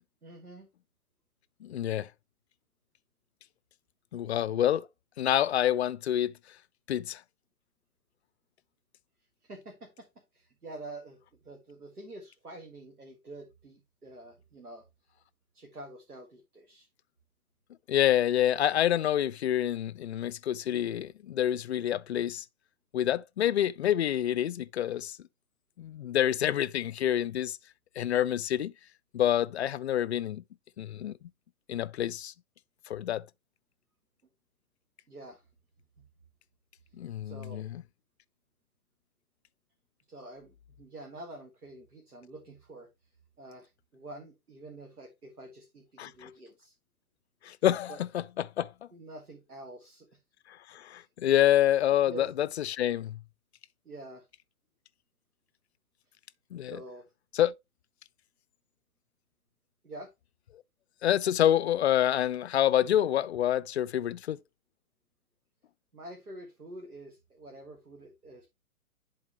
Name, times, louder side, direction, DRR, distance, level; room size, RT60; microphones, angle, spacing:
voice 1, 0.2-0.7 9.4-10.1 10.3-14.9 15.5-16.9 35.1-35.5 36.0-36.1 37.2-37.7 40.1-42.9 43.4-46.7 47.9-48.0 48.9-50.2 50.9-51.1 52.1-52.3 53.9-54.3 56.6-57.1 59.8-60.1 65.9-68.5, right 2 dB, 90° right, 1.7 m, -47 dB
voice 2, 1.6-2.1 4.1-4.9 5.2-6.3 6.9-7.2 17.9-22.4 22.9-25.2 25.8-27.6 28.0-28.7 29.1-30.4 30.8-31.1 31.7-32.3 32.9-33.2 36.9-37.8 46.0-46.3 47.4-48.7 50.5-53.2 56.5-56.8 57.3-57.5 61.0-64.4, left 11 dB, 50° left, 0.4 m, -27 dB
10.5 x 4.0 x 2.9 m
figure-of-eight pair, 130°, 44 cm